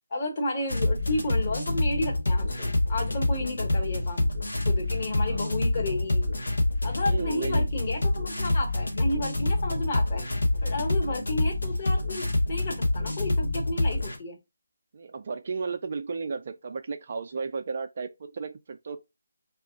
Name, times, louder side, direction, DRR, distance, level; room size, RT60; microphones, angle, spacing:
voice 1, 0.1-4.3 4.6-6.3 6.8-10.2 10.6-14.4, left 2 dB, 30° left, 1.2 m, -32 dB
sound 1, 0.7-14.2, left 2 dB, 65° left, 1.0 m, -27 dB
voice 2, 7.1-7.7 14.9-19.0, right 4 dB, 40° right, 0.3 m, -34 dB
2.4 x 2.3 x 3.7 m
figure-of-eight pair, 155°, 0 cm